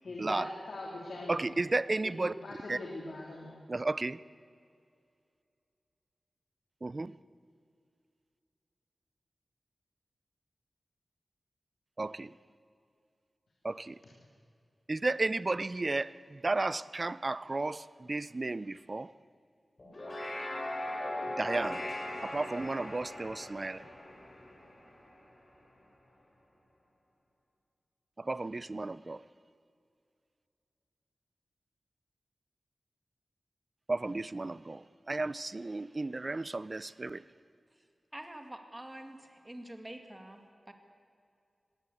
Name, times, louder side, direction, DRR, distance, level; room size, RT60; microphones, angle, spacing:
voice 1, 0.0-1.5 2.2-3.6, left 2 dB, 75° left, -2 dB, 3.1 m, -42 dB
voice 2, 1.3-2.3 2.7-2.8 3.7-4.2 6.8-7.1 12.0-12.3 13.6-14.0 14.9-19.1 21.4-21.9 22.2-23.9 28.2-29.2 33.9-37.2, right 2 dB, 35° right, 18 dB, 0.5 m, -33 dB
sound 1, 19.8-25.3, left 1 dB, 40° left, 6.9 m, -39 dB
voice 3, 38.1-40.7, right 1 dB, 15° right, 5 dB, 2.1 m, -47 dB
20.5 x 17.0 x 8.4 m, 2.4 s
wide cardioid pair, 105°, 0 cm